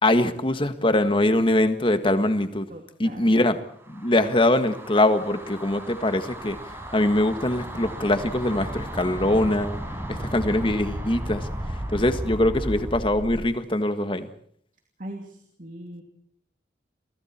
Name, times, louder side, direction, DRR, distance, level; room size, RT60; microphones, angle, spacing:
voice 1, 0.0-2.7 3.0-3.6 3.9-6.6 6.9-9.8 10.1-11.5 11.9-14.3, left 1 dB, 30° left, 9 dB, 1.7 m, -22 dB
voice 2, 2.7-3.4 15.0-16.0, right 1 dB, 50° right, 3 dB, 2.9 m, -40 dB
sound 1, 3.7-13.5, right 1 dB, 15° right, 4.8 m, -34 dB
30.0 x 23.5 x 4.5 m, 0.63 s
head